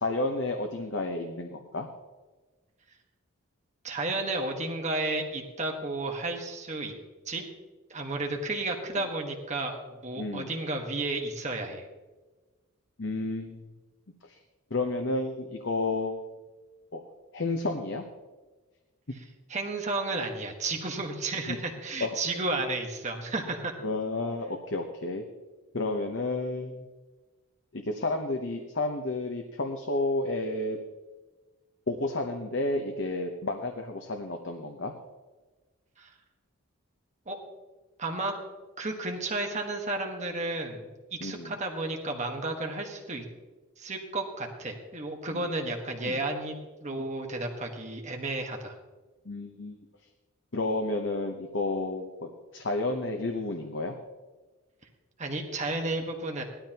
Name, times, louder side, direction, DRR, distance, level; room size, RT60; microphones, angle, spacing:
voice 1, 0.0-1.9 8.9-9.0 10.2-10.5 13.0-13.6 14.2-14.4 14.7-16.2 16.9-17.0 17.3-18.0 21.5-21.6 22.0-22.1 23.8-25.2 25.7-26.8 27.7-30.8 31.9-34.9 41.2-41.5 45.3-45.5 46.0-46.2 49.2-49.8 50.5-54.0, left 2 dB, 55° left, 4 dB, 1.0 m, -31 dB
voice 2, 3.8-6.9 7.3-7.4 7.9-11.8 19.5-23.7 36.0-36.1 37.3-37.4 38.0-38.3 38.8-40.9 41.2-43.2 43.8-48.7 55.2-56.4, right 2 dB, 30° right, 2 dB, 1.4 m, -32 dB
18.5 x 12.5 x 3.0 m, 1.2 s
head